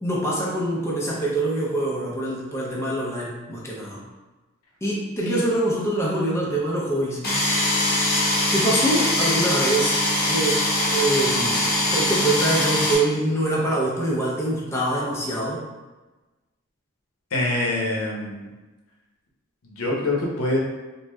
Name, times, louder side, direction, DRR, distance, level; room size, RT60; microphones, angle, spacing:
voice 1, 0.0-4.0 4.8-7.2 8.5-10.0 10.2-10.6 10.9-15.6, right 1 dB, 15° left, -5 dB, 0.5 m, -24 dB
sound 1, 7.2-12.9, left 1 dB, 45° left, 0.8 m, -22 dB
voice 2, 17.3-18.5 19.6-20.6, left 2 dB, 75° left, -3 dB, 0.7 m, -25 dB
3.1 x 2.5 x 2.2 m, 1.2 s
head